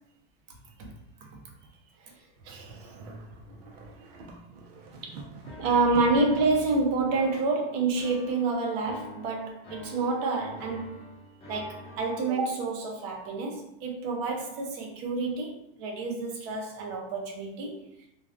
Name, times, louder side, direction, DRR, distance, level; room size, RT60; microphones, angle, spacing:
sound 1, 2.3-6.4, right 2 dB, 85° right, 0.6 m, -45 dB
voice 1, 2.4-3.0 5.0-5.1 5.6-11.0 11.5-17.8, right 3 dB, 45° right, 0 dB, 0.6 m, -28 dB
sound 2, 5.4-12.3, left 1 dB, 20° left, 0.6 m, -47 dB
2.4 x 2.2 x 2.4 m, 0.84 s
supercardioid pair, 155°, 30 cm